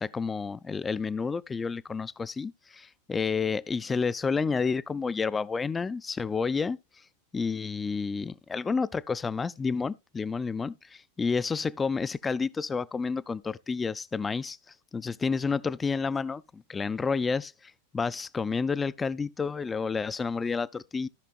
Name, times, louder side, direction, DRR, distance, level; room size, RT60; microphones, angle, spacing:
voice 1, 0.0-6.8 7.3-14.6 14.9-17.5 17.9-21.1, left 5 dB, 15° left, 0.3 m, -30 dB
16.0 x 5.8 x 2.3 m
figure-of-eight pair, 90°, 0 cm